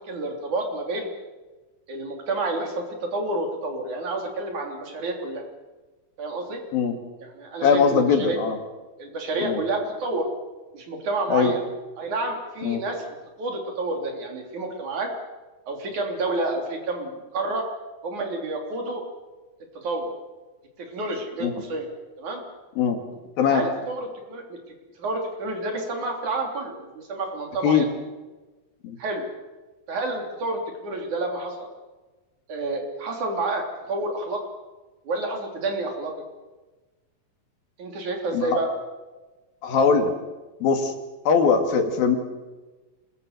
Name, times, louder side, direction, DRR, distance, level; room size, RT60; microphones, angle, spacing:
voice 1, 0.1-1.1 1.9-5.4 6.2-6.6 7.2-8.4 9.0-10.3 10.7-11.6 12.0-15.1 15.7-17.7 18.0-19.0 19.8-20.1 20.8-21.9 22.2-22.4 23.4-24.6 25.0-27.9 29.0-29.2 29.9-31.7 32.5-34.4 35.1-36.1 37.8-38.7, right 2 dB, 60° right, 3 dB, 4.7 m, -29 dB
voice 2, 7.6-8.6 9.4-9.6 11.3-11.5 12.6-12.8 21.4-21.5 22.8-23.0 23.4-23.6 27.6-27.9 28.8-29.0 38.3-38.6 39.6-40.1 40.6-40.9 41.3-42.2, left 6 dB, 85° left, 6 dB, 4.0 m, -21 dB
27.0 x 21.5 x 6.7 m, 1.2 s
omnidirectional pair, 4.0 m